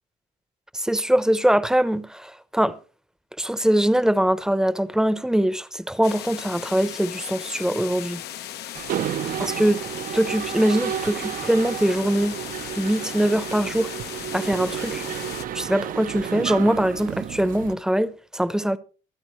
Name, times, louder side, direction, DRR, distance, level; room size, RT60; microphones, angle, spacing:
voice 1, 0.7-2.8 3.4-8.2 9.4-9.8 10.1-12.4 12.7-13.9 14.3-15.1 15.5-18.8, right 1 dB, 5° right, 0.8 m, -22 dB
sound 1, 6.0-15.5, left 13 dB, 75° left, 0.8 m, -37 dB
Mechanisms, 8.8-17.7, right 10 dB, 55° right, 0.7 m, -31 dB
24.5 x 8.8 x 3.1 m
cardioid pair, 110°, 17 cm